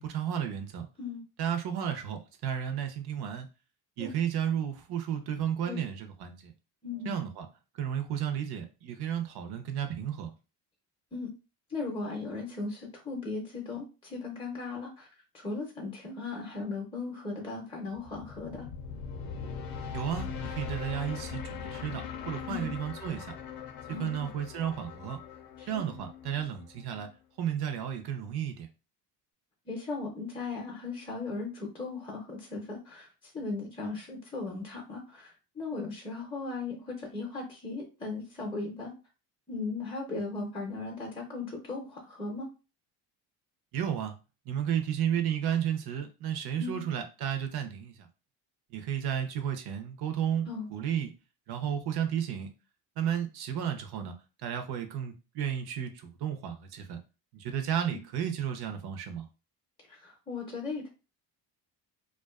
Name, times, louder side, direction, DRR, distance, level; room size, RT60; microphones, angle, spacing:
voice 1, 0.0-0.9 1.4-3.5 4.0-6.5 7.0-7.5 7.8-10.3 19.9-23.3 24.0-25.2 25.7-27.1 27.4-28.7 43.7-44.1 44.5-47.9 48.7-51.1 51.5-52.5 53.0-54.1 54.4-57.0 57.3-59.2, right 9 dB, 55° right, 6 dB, 0.7 m, -33 dB
voice 2, 6.8-7.1 11.1-11.3 11.7-15.1 15.3-18.7 22.5-22.7 23.9-24.3 25.6-25.8 29.7-33.1 33.3-38.9 39.5-42.5 46.6-46.8 50.5-50.7 57.8-58.0 59.9-60.9, left 3 dB, 10° left, 0 dB, 0.6 m, -37 dB
sound 1, 17.9-27.1, left 6 dB, 50° left, 0.6 m, -41 dB
2.4 x 2.3 x 2.3 m, 0.31 s
cardioid pair, 95°, 45 cm